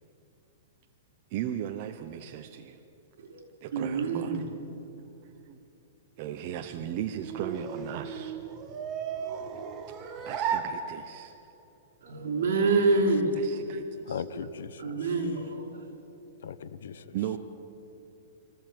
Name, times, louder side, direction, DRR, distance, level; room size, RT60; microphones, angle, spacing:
voice 1, 1.3-2.8 3.6-4.4 5.0-5.6 6.2-8.4 9.9-10.0 10.3-11.3 13.4-14.2 17.1-17.4, right 10 dB, 35° right, 0.9 m, -37 dB
voice 2, 3.7-4.4 12.0-13.3 14.8-15.6, right 3 dB, 70° right, 4.8 m, -26 dB
sound 1, 6.5-11.5, right 7 dB, 20° right, 1.6 m, -36 dB
voice 3, 14.1-14.9 16.4-17.1, left 8 dB, 80° left, 1.1 m, -38 dB
25.0 x 14.5 x 9.3 m
hypercardioid pair, 175°, 0 cm